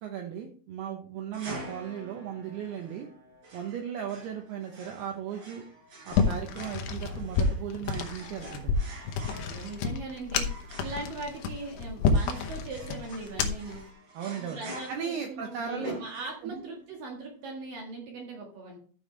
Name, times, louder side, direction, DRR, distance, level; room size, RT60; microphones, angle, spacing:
voice 1, 0.0-3.1 3.5-5.6 6.0-8.8 14.2-14.6 14.9-15.9 16.4-16.6, right 8 dB, 85° right, 3 dB, 2.3 m, -36 dB
sound 1, 1.3-16.7, right 1 dB, 40° right, 5.4 m, -46 dB
sound 2, 6.1-13.8, left 5 dB, 75° left, 2.5 m, -29 dB
voice 2, 9.4-10.5 10.8-13.8 14.4-18.8, right 3 dB, 55° right, 0 dB, 2.7 m, -40 dB
12.5 x 7.0 x 3.3 m, 0.43 s
omnidirectional pair, 5.9 m